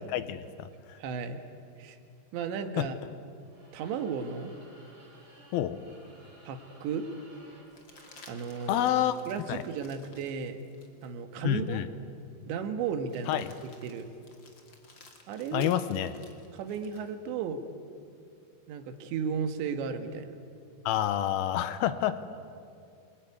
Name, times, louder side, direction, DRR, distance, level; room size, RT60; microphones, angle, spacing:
voice 1, 0.0-1.0 2.8-2.9 5.5-5.8 8.7-9.2 9.5-9.6 11.4-11.9 13.3-13.5 15.5-16.1 20.9-22.2, left 11 dB, 75° left, 12 dB, 2.3 m, -28 dB
voice 2, 1.0-1.4 1.8-2.0 2.3-3.0 3.7-4.5 6.4-7.1 8.3-8.9 9.3-10.6 11.0-11.8 12.5-13.5 13.8-14.1 15.3-15.7 16.5-17.6 18.7-20.3, right 6 dB, 75° right, 7 dB, 3.7 m, -34 dB
sound 1, 3.4-9.2, right 1 dB, 25° right, 6.9 m, -56 dB
sound 2, 7.7-11.1 11.7-11.8 13.0-17.1 19.3-20.2, left 3 dB, 35° left, 2.2 m, -56 dB
28.0 x 22.0 x 9.5 m, 2.4 s
omnidirectional pair, 5.4 m